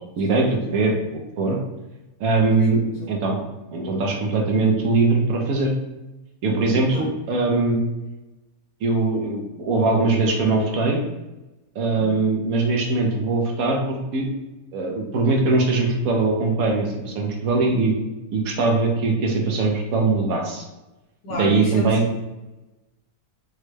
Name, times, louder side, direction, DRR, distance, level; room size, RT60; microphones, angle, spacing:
voice 1, 0.2-1.6 2.2-3.4 3.7-5.7 6.4-7.8 8.8-11.0 11.7-14.3 14.7-18.0 18.3-20.6 21.4-22.0, right 3 dB, 70° right, 1 dB, 1.1 m, -21 dB
voice 2, 2.6-3.0 6.9-7.1 11.9-12.2 21.2-22.2, equal, 80° left, -5 dB, 1.8 m, -32 dB
5.0 x 2.2 x 3.2 m, 1.0 s
omnidirectional pair, 1.6 m